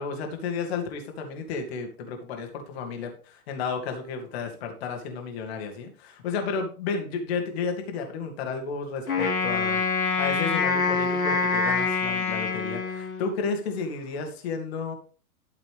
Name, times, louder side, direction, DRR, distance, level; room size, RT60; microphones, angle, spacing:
voice 1, 0.0-14.9, left 5 dB, 45° left, 4 dB, 2.5 m, -32 dB
Wind instrument woodwind instrument, 9.1-13.5, left 4 dB, 65° left, 2.4 m, -25 dB
12.5 x 6.7 x 3.5 m, 0.37 s
figure-of-eight pair, 105°, 45 cm